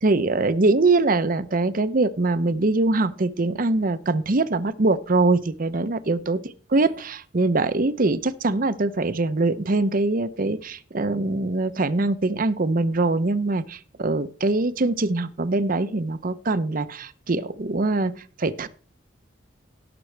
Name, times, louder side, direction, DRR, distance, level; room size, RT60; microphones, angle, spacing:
voice 1, 0.0-6.4 6.7-18.1 18.4-18.7, right 2 dB, 45° right, 14 dB, 0.7 m, -23 dB
18.0 x 6.1 x 3.3 m, 0.41 s
head